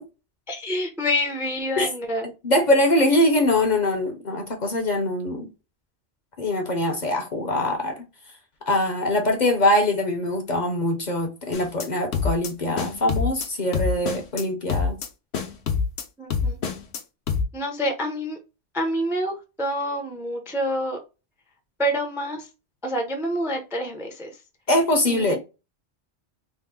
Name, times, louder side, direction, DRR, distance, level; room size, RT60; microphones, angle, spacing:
voice 1, 0.5-2.2 16.2-16.6 17.5-18.4 18.7-21.0 21.8-22.5 22.8-24.3 25.1-25.4, equal, 5° right, 0.5 m, -27 dB
voice 2, 2.4-5.5 6.4-8.0 8.7-15.0 24.7-25.4, left 1 dB, 45° left, 0.7 m, -22 dB
sound 1, 11.5-11.9 12.1-12.5 12.8-13.5 13.7-14.4 14.7-15.1 15.3-16.0 16.3-17.0 17.3-17.4, left 6 dB, 70° left, 1.0 m, -25 dB
3.6 x 2.1 x 3.6 m
omnidirectional pair, 1.2 m